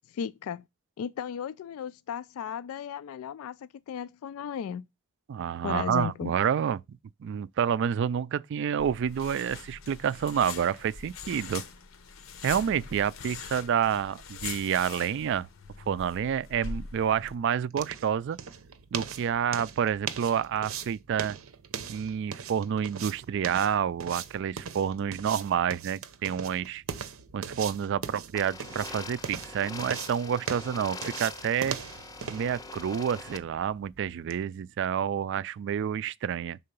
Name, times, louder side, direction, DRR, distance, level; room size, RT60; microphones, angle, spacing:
voice 1, 0.1-0.6 1.0-4.8 5.6-6.3, left 8 dB, 90° left, 0.3 m, -35 dB
voice 2, 5.3-11.6 12.4-15.5 15.9-18.4 18.9-21.4 21.9-26.8 27.3-31.8 32.3-36.6, right 8 dB, 60° right, 0.3 m, -29 dB
sound 1, 8.8-17.3, left 5 dB, 70° left, 0.7 m, -42 dB
sound 2, 16.6-34.4, right 7 dB, 85° right, 0.7 m, -40 dB
sound 3, 28.3-33.4, left 3 dB, 20° left, 0.4 m, -43 dB
5.6 x 3.9 x 5.2 m
head